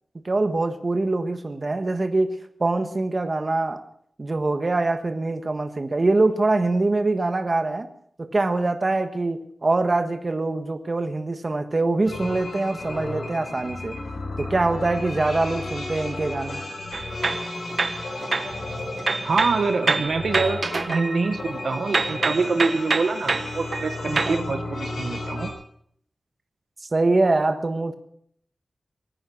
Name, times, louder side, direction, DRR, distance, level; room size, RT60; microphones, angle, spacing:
voice 1, 0.2-3.8 4.2-7.9 8.2-14.0 14.4-16.6 26.9-27.9, right 2 dB, 40° right, 1.4 m, -24 dB
sound 1, 12.0-25.5, left 2 dB, 85° left, 4.4 m, -33 dB
sound 2, 16.9-18.6 19.0-21.6 21.9-24.4, right 4 dB, 55° right, 0.9 m, -27 dB
voice 2, 19.2-25.5, right 4 dB, 70° right, 1.2 m, -25 dB
23.0 x 9.8 x 6.1 m
wide cardioid pair, 85°, 0 cm